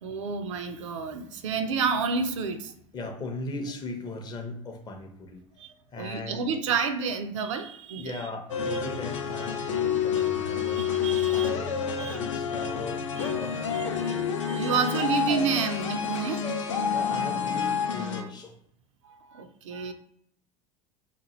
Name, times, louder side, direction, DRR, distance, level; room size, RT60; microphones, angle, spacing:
voice 1, 0.0-2.7 5.6-8.2 10.6-11.5 12.0-12.2 12.6-12.7 13.2-13.3 13.7-14.1 14.5-16.4 19.0-19.9, right 5 dB, 65° right, 7 dB, 0.4 m, -30 dB
voice 2, 2.9-5.4 5.9-6.5 8.0-10.8 11.3-14.2 16.9-18.5, left 2 dB, 25° left, 3 dB, 0.6 m, -38 dB
sound 1, 8.5-18.2, left 7 dB, 70° left, 0.5 m, -28 dB
2.9 x 2.2 x 2.9 m, 0.69 s
figure-of-eight pair, 75°, 17 cm